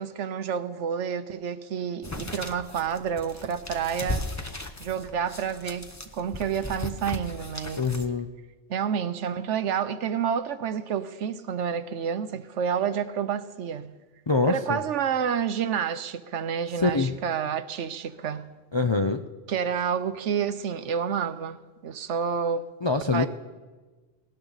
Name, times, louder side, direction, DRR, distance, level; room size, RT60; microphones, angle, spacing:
voice 1, 0.0-4.3 4.8-7.9 8.7-14.0 14.5-18.5 19.5-22.6 23.1-23.3, right 7 dB, 75° right, 1.1 m, -29 dB
sound 1, 2.0-8.1, left 1 dB, 15° left, 0.8 m, -37 dB
voice 2, 7.7-8.3 14.3-14.8 16.8-17.1 18.7-19.2 22.8-23.3, left 3 dB, 35° left, 0.4 m, -24 dB
18.5 x 18.0 x 4.0 m
omnidirectional pair, 1.2 m